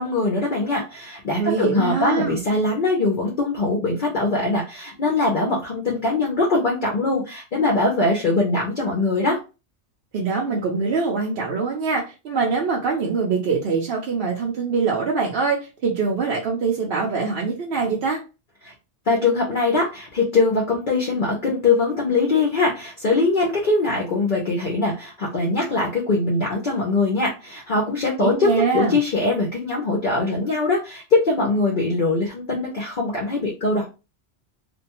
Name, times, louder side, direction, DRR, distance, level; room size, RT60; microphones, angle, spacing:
voice 1, 0.0-9.4 18.6-18.7 19.1-33.9, left 3 dB, 50° left, -2 dB, 0.7 m, -22 dB
voice 2, 1.3-2.4 10.1-18.2 28.2-29.0, right 4 dB, 65° right, -2 dB, 0.8 m, -23 dB
2.6 x 2.2 x 2.8 m, 0.30 s
omnidirectional pair, 1.2 m